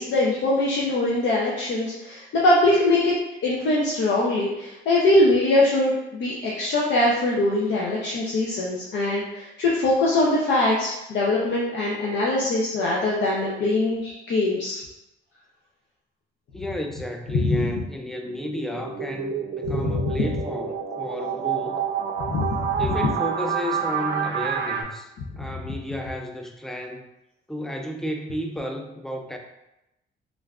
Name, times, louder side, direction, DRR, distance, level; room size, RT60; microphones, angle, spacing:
voice 1, 0.0-3.1 3.4-14.8 17.4-17.7 19.7-20.2 22.3-22.5, left 2 dB, 65° left, -4 dB, 0.6 m, -22 dB
voice 2, 16.5-21.8 22.8-27.1 27.5-29.4, left 1 dB, ahead, 3 dB, 0.3 m, -32 dB
sound 1, 18.2-24.8, right 7 dB, 60° right, 0.5 m, -28 dB
3.2 x 2.5 x 2.3 m, 0.91 s
cardioid pair, 90°, 20 cm